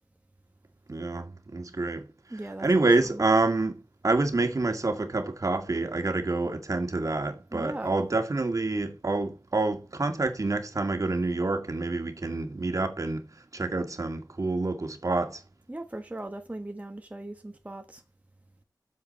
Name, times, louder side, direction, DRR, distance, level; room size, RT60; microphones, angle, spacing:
voice 1, 0.9-2.1 2.6-13.3 13.5-15.4, right 2 dB, 50° right, 2.0 m, -27 dB
voice 2, 2.3-3.2 7.5-8.0 15.7-18.0, right 1 dB, 20° right, 1.2 m, -39 dB
8.2 x 7.4 x 4.2 m
wide cardioid pair, 70°, 7 cm